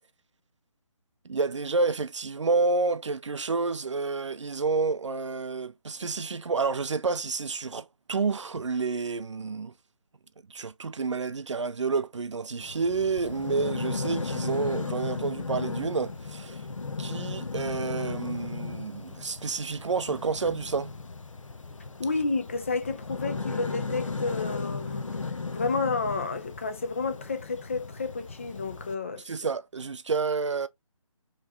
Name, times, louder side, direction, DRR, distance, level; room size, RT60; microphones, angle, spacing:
voice 1, 1.2-9.7 10.5-16.6 17.0-20.9 29.2-30.7, right 4 dB, 60° right, 0.5 m, -29 dB
sound 1, 12.6-28.9, left 4 dB, 70° left, 0.7 m, -36 dB
voice 2, 22.0-25.1 25.5-29.2, left 4 dB, 25° left, 0.4 m, -30 dB
4.3 x 3.1 x 3.5 m
figure-of-eight pair, 150°, 17 cm